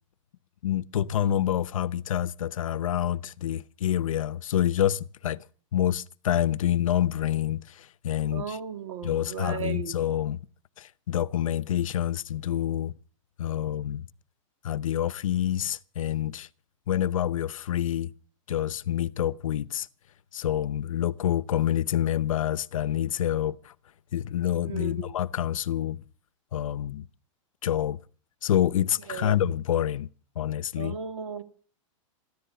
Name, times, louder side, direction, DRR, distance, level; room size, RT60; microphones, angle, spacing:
voice 1, 0.6-5.4 5.7-8.6 9.0-10.4 10.8-12.9 13.4-14.1 14.6-16.5 16.9-18.1 18.5-19.9 20.3-23.7 24.1-26.0 26.5-27.1 27.6-28.0 28.4-30.1 30.4-31.0, left 11 dB, 80° left, 0.8 m, -27 dB
voice 2, 8.3-9.9 24.7-25.2 29.1-29.4 30.8-31.4, right 7 dB, 85° right, 2.3 m, -36 dB
14.0 x 13.0 x 6.9 m
supercardioid pair, 180°, 17 cm